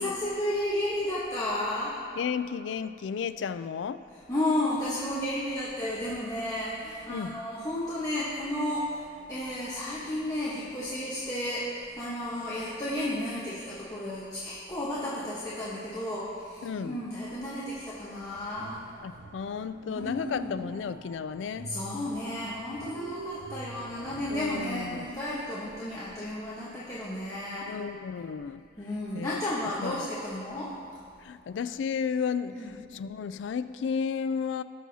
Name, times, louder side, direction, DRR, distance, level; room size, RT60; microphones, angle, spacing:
voice 1, 0.0-1.9 4.3-18.8 19.9-20.6 21.4-27.7 28.8-30.7 32.6-32.7, left 1 dB, 20° left, -8 dB, 1.1 m, -33 dB
voice 2, 2.2-4.0 7.1-7.4 16.6-17.0 19.0-21.7 24.3-25.1 27.7-28.6 29.1-30.1 31.2-34.6, left 6 dB, 75° left, 13 dB, 0.3 m, -33 dB
sound 1, 18.3-25.1, right 4 dB, 85° right, 0.6 m, -46 dB
18.0 x 6.1 x 2.8 m, 2.4 s
head